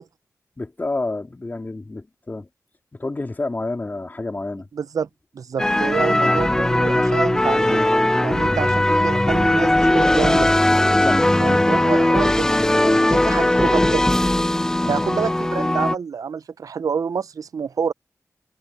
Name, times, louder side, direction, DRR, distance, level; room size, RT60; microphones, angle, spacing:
voice 1, 0.6-2.5 2.9-4.7 6.2-6.4 8.5-8.6 11.0-11.3 13.2-13.4 14.8-15.3, left 2 dB, 30° left, 3.7 m, -29 dB
voice 2, 4.7-5.1 5.3-7.8 8.2-10.5 11.4-12.4 12.8-14.1 14.9-17.9, right 6 dB, 75° right, 0.5 m, -27 dB
sound 1, 5.6-15.9, left 1 dB, 10° left, 0.3 m, -18 dB
wide cardioid pair, 90°, 6 cm